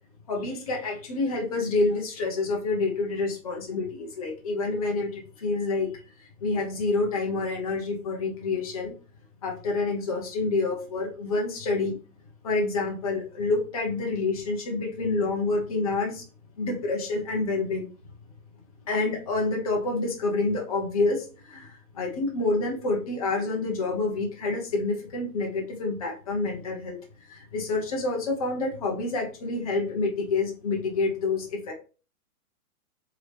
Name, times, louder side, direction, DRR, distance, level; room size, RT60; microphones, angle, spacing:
voice 1, 0.3-6.0 6.4-8.9 9.4-12.0 12.4-16.2 16.6-17.9 18.9-31.7, left 3 dB, 25° left, 0 dB, 0.8 m, -28 dB
4.7 x 3.2 x 3.3 m, 0.36 s
hypercardioid pair, 170°, 45 cm